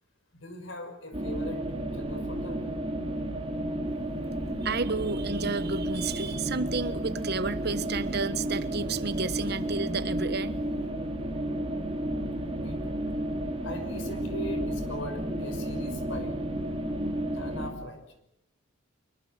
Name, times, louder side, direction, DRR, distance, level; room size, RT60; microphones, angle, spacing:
voice 1, 0.3-2.6 12.6-13.0 13.6-16.3 17.3-18.0, left 2 dB, 65° left, 8 dB, 5.6 m, -40 dB
sound 1, 1.1-17.7, right 1 dB, 30° right, 4.1 m, -32 dB
voice 2, 4.6-10.6, right 4 dB, 50° right, 13 dB, 1.2 m, -31 dB
25.0 x 23.5 x 7.9 m, 0.79 s
head